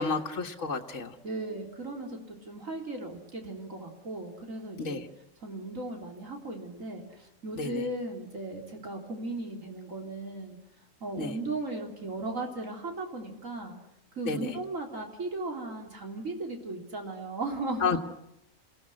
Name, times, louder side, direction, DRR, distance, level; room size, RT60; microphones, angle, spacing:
voice 1, 0.0-1.1 4.8-5.0 7.6-7.7 11.2-11.3 14.3-14.5 17.8-18.0, left 4 dB, 65° left, 1 dB, 1.8 m, -30 dB
voice 2, 1.2-5.0 5.4-10.6 11.0-13.8 14.2-18.0, right 2 dB, 80° right, 2 dB, 3.9 m, -37 dB
28.5 x 17.5 x 9.9 m, 0.87 s
omnidirectional pair, 1.4 m